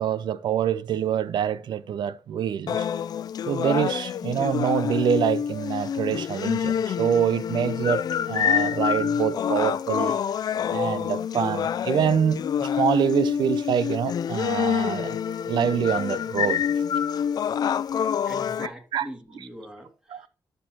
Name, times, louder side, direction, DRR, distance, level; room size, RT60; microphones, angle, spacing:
voice 1, 0.0-2.9 3.5-10.2 10.7-15.2 15.5-16.7 18.6-19.1 19.3-19.5 20.1-20.3, right 9 dB, 75° right, 0.6 m, -26 dB
sound 1, 2.7-18.7, left 8 dB, 60° left, 0.3 m, -27 dB
voice 2, 18.3-20.3, equal, 10° right, 2.0 m, -42 dB
12.0 x 4.5 x 2.8 m
cardioid pair, 85°, 8 cm